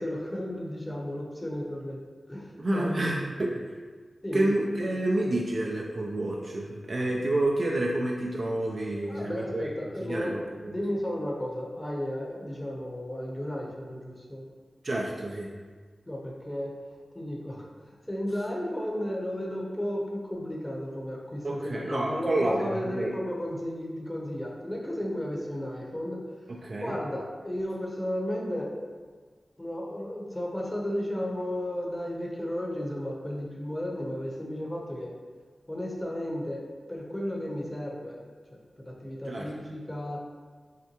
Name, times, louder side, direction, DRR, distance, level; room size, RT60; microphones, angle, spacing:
voice 1, 0.0-2.0 2.3-3.2 4.2-4.5 9.1-14.4 16.1-16.7 17.1-26.2 26.8-28.8 29.6-35.1 35.7-36.6 36.9-38.2 38.5-40.2, left 1 dB, 20° left, -2 dB, 0.8 m, -34 dB
voice 2, 2.6-3.8 4.3-9.7 10.1-10.7 14.8-15.5 21.4-23.1 26.5-27.0 39.3-39.5, right 1 dB, 55° right, -2 dB, 0.4 m, -29 dB
5.6 x 2.2 x 3.0 m, 1.5 s
cardioid pair, 55°, 0 cm